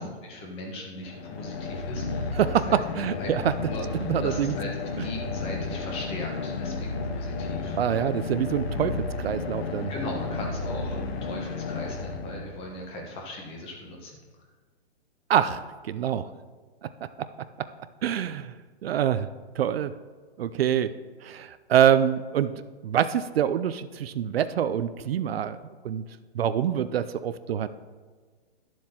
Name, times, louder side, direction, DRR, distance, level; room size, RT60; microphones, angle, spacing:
voice 1, 0.0-2.8 3.2-4.7 5.0-8.1 9.9-14.2, left 1 dB, 15° left, 0 dB, 1.2 m, -38 dB
sound 1, 1.0-12.9, left 4 dB, 65° left, 0.9 m, -32 dB
voice 2, 2.3-3.5 4.1-4.5 7.7-9.9 15.3-16.3 18.0-18.5 18.8-19.3 19.6-19.9 20.4-20.9 21.2-22.5 22.8-25.6 25.8-26.0 26.3-27.7, right 9 dB, 65° right, 12 dB, 0.5 m, -25 dB
11.5 x 7.4 x 2.9 m, 1.5 s
hypercardioid pair, 155°, 33 cm